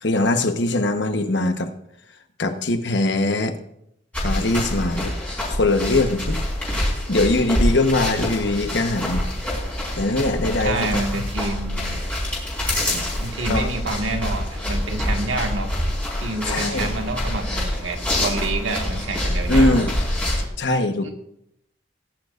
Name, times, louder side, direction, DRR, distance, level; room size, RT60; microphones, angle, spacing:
voice 1, 0.0-1.7 2.4-3.5 4.2-5.1 5.4-6.4 6.8-9.2 10.0-11.2 12.8-13.0 13.5-13.7 16.5-16.9 19.5-20.0 20.6-21.1, left 2 dB, 65° left, 7 dB, 1.1 m, -22 dB
sound 1, 4.1-20.5, left 1 dB, 5° left, 4.5 m, -26 dB
voice 2, 10.6-12.0 13.2-15.7 16.1-19.9 21.0-21.1, right 2 dB, 90° right, 4 dB, 1.6 m, -28 dB
20.0 x 10.5 x 2.5 m, 0.77 s
head